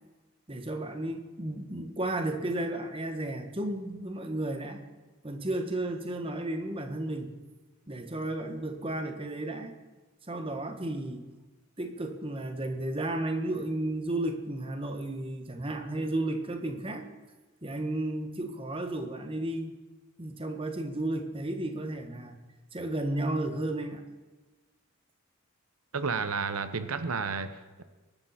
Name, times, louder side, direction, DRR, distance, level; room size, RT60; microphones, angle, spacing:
voice 1, 0.5-4.8 5.2-7.3 7.9-9.8 10.3-11.2 11.8-17.1 17.6-19.8 20.2-22.4 22.7-24.0, right 1 dB, 25° right, 5 dB, 1.3 m, -33 dB
voice 2, 25.9-27.8, right 5 dB, 85° right, 11 dB, 0.9 m, -32 dB
23.0 x 12.0 x 4.3 m, 1.3 s
head